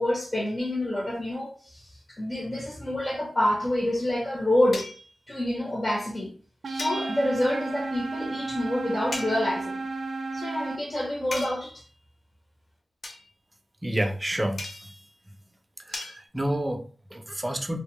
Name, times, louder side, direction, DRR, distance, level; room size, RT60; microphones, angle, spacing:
voice 1, 0.0-4.9 5.3-6.3 6.7-9.8 10.3-11.8, left 1 dB, 25° left, 0.6 m, -27 dB
sound 1, 4.7-5.1 6.8-7.5 9.1-9.4 11.3-11.8 13.0-13.3 14.6-15.0 15.9-16.2, left 2 dB, 70° left, 0.5 m, -37 dB
sound 2, 6.6-10.8, right 3 dB, 90° right, 0.3 m, -33 dB
voice 2, 13.8-14.9 15.3-15.4 15.8-17.8, right 1 dB, 15° right, 0.4 m, -30 dB
2.5 x 2.1 x 2.9 m
wide cardioid pair, 115°, 0 cm